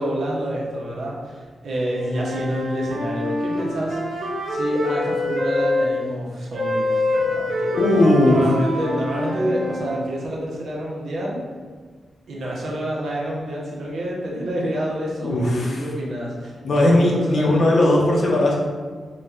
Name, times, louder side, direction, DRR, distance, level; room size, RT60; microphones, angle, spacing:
voice 1, 0.0-7.8 8.2-11.4 12.3-17.8, equal, 70° right, -4 dB, 0.7 m, -28 dB
Wind instrument woodwind instrument, 1.9-5.8 6.5-10.1, left 1 dB, 55° right, 1.3 m, -25 dB
voice 2, 7.8-8.5 15.2-15.8 16.6-18.6, left 1 dB, 60° left, -2 dB, 0.6 m, -18 dB
4.1 x 2.2 x 2.4 m, 1.5 s
wide cardioid pair, 135°, 0 cm